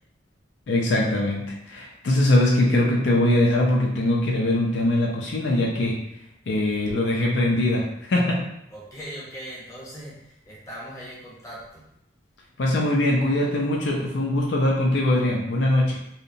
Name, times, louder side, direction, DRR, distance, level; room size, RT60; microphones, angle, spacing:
voice 1, 0.7-6.0 6.5-8.5 12.6-16.0, left 1 dB, 70° left, -2 dB, 0.4 m, -22 dB
voice 2, 8.7-11.9, equal, 15° left, -6 dB, 0.7 m, -40 dB
2.7 x 2.1 x 2.6 m, 0.79 s
head